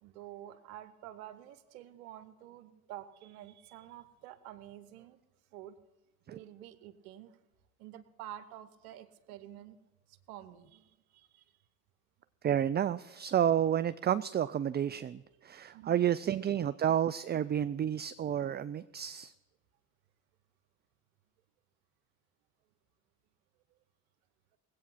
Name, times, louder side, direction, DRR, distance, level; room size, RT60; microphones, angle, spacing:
voice 1, 0.0-5.2 5.5-5.8 6.3-7.4 7.8-9.8 10.1-11.6 15.7-16.2, right 12 dB, 90° right, 12 dB, 1.0 m, -49 dB
voice 2, 12.4-19.3, right 10 dB, 25° right, 14 dB, 0.3 m, -30 dB
19.0 x 8.5 x 5.6 m, 1.1 s
hypercardioid pair, 65°, 44 cm